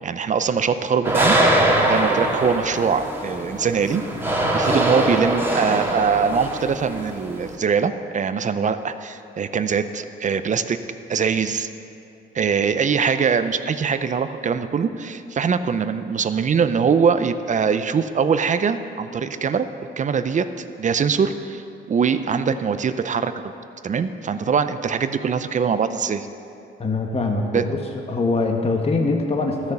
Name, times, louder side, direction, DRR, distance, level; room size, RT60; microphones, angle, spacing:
voice 1, 0.0-1.4 1.9-4.0 4.5-10.8 11.1-11.7 12.3-19.7 20.0-20.5 20.8-21.6 21.9-23.4 23.8-26.3 27.5-27.6, right 6 dB, 40° right, 11 dB, 0.6 m, -22 dB
sound 1, 1.0-7.5, right 1 dB, 10° right, 1.7 m, -22 dB
voice 2, 26.8-27.8 28.1-29.7, left 3 dB, 30° left, 2 dB, 1.2 m, -23 dB
13.5 x 6.6 x 6.9 m, 2.6 s
cardioid pair, 90°, 20 cm